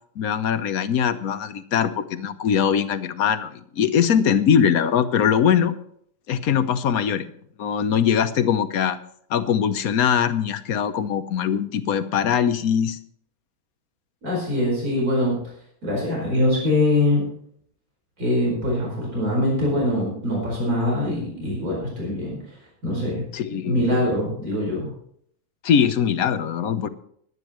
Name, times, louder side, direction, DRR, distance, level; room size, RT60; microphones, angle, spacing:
voice 1, 0.2-5.7 6.3-7.3 7.6-9.0 9.3-13.0 23.3-23.9 25.6-26.9, left 8 dB, 70° left, 11 dB, 1.4 m, -21 dB
voice 2, 14.2-15.4 15.8-17.2 18.2-22.4 22.8-23.2 23.6-24.9, left 1 dB, 75° right, -3 dB, 5.3 m, -23 dB
21.5 x 9.7 x 3.1 m, 0.66 s
omnidirectional pair, 1.6 m